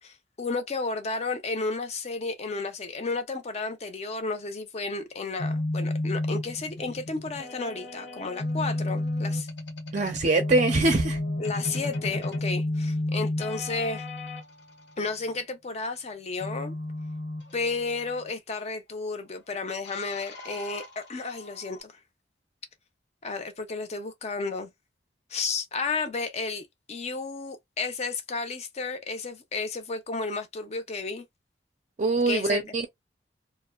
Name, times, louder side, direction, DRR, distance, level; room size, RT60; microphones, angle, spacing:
voice 1, 0.0-9.5 11.4-14.1 15.0-16.7 17.5-22.0 23.2-24.7 25.3-31.3 32.3-32.7, left 3 dB, 35° left, 0.5 m, -32 dB
sound 1, 5.4-14.4 16.4-18.3 19.8-21.8, left 1 dB, 70° left, 0.9 m, -32 dB
voice 2, 9.9-11.2 32.0-32.9, right 3 dB, 40° right, 0.4 m, -23 dB
2.5 x 2.1 x 2.3 m
head